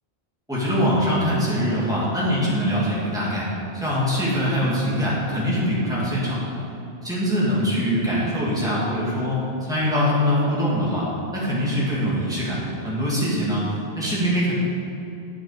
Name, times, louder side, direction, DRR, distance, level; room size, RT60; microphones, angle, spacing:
voice 1, 0.5-3.5 3.7-6.5 7.0-11.0 11.3-14.5, equal, 5° right, -8 dB, 2.1 m, -23 dB
9.4 x 5.9 x 4.9 m, 3.0 s
omnidirectional pair, 1.1 m